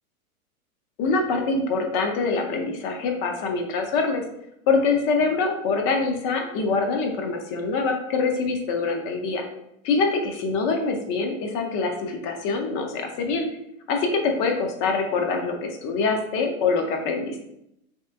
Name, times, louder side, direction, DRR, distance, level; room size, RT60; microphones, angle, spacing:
voice 1, 1.0-4.2 4.7-9.4 9.8-13.5 13.9-17.4, left 4 dB, 30° left, 3 dB, 0.6 m, -24 dB
3.1 x 2.9 x 3.3 m, 0.80 s
hypercardioid pair, 125°, 43 cm